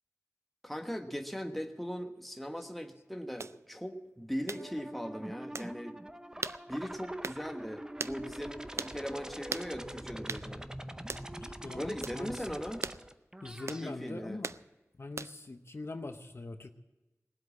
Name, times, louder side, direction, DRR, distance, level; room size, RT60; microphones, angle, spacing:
voice 1, 0.6-6.0 6.7-10.7 11.7-12.9 13.8-14.4, equal, ahead, 4 dB, 1.3 m, -39 dB
sound 1, 3.4-3.6 4.5-4.7 5.5-5.7 6.4-6.6 7.2-7.4 8.0-8.2 8.8-9.0 9.5-9.7 10.3-10.5 11.1-11.3 12.0-12.2 12.8-13.0 13.7-13.9 14.4-14.6 15.2-15.5, right 4 dB, 60° right, 0.4 m, -38 dB
sound 2, 4.5-13.9, right 1 dB, 15° right, 0.6 m, -44 dB
voice 2, 11.4-12.4 13.4-14.5 15.0-16.7, left 2 dB, 55° left, 7 dB, 0.8 m, -42 dB
19.0 x 7.9 x 8.4 m, 1.1 s
wide cardioid pair, 70°, 5 cm